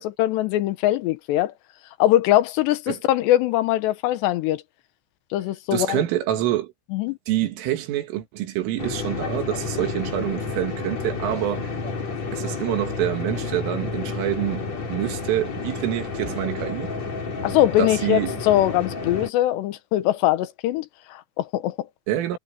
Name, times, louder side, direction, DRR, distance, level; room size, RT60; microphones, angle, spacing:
voice 1, 0.2-1.5 2.0-4.6 5.3-6.0 6.9-7.2 17.4-21.9, left 14 dB, 75° left, 2.8 m, -22 dB
voice 2, 5.7-6.7 7.3-11.7 12.3-16.9 17.8-18.3 22.1-22.4, right 13 dB, 80° right, 4.5 m, -26 dB
sound 1, 8.8-19.3, left 4 dB, 35° left, 4.6 m, -30 dB
omnidirectional pair, 5.8 m